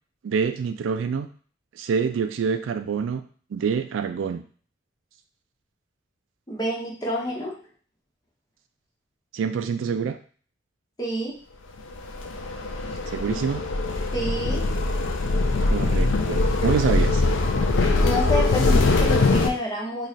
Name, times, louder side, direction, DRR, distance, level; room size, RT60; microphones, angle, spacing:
voice 1, 0.2-1.3 1.8-3.2 3.5-4.4 9.3-10.2 13.1-13.6 15.7-17.2, right 6 dB, 80° right, 9 dB, 0.3 m, -26 dB
voice 2, 6.5-7.6 11.0-11.3 14.1-14.6 17.9-20.1, equal, 20° left, -3 dB, 0.9 m, -28 dB
sound 1, 11.9-19.5, left 2 dB, 75° left, 0.5 m, -22 dB
3.1 x 2.3 x 4.0 m, 0.43 s
head